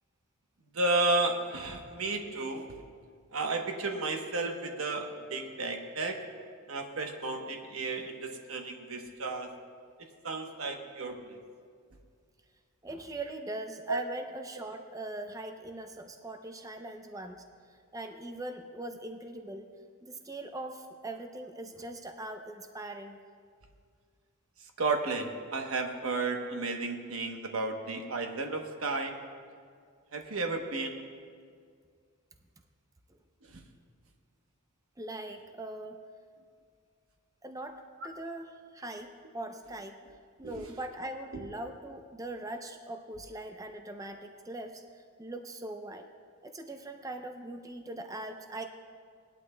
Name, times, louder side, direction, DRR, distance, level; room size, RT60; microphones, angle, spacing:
voice 1, 0.7-2.8 3.3-6.2 6.7-9.5 10.2-11.4 13.9-14.0 24.8-29.1 30.1-31.0 33.5-33.6 40.4-40.7, right 3 dB, 70° right, 4 dB, 1.0 m, -33 dB
voice 2, 12.8-17.4 17.9-19.7 20.0-23.2 35.0-36.0 37.4-40.0 40.4-46.1 46.4-48.6, right 1 dB, 15° right, 5 dB, 0.5 m, -41 dB
18.5 x 11.5 x 2.2 m, 2.1 s
head